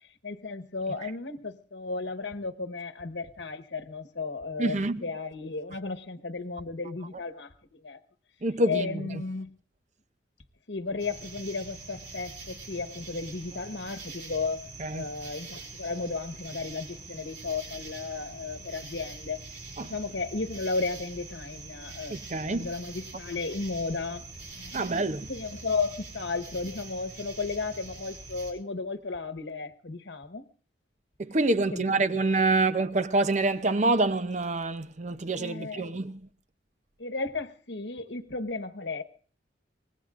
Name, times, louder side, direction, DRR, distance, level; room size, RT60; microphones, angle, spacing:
voice 1, 0.0-8.0 8.6-9.5 10.7-19.4 19.8-22.2 22.4-24.2 24.5-24.9 25.3-30.4 31.7-32.0 35.1-35.9 37.0-39.0, left 4 dB, 75° left, 1.2 m, -34 dB
voice 2, 4.6-5.0 8.4-9.2 14.8-15.1 19.8-19.9 22.1-22.7 24.7-25.3 31.2-36.2, right 2 dB, 40° right, 0.6 m, -26 dB
sound 1, 11.0-28.5, right 3 dB, 70° right, 5.0 m, -44 dB
24.5 x 20.0 x 2.5 m
head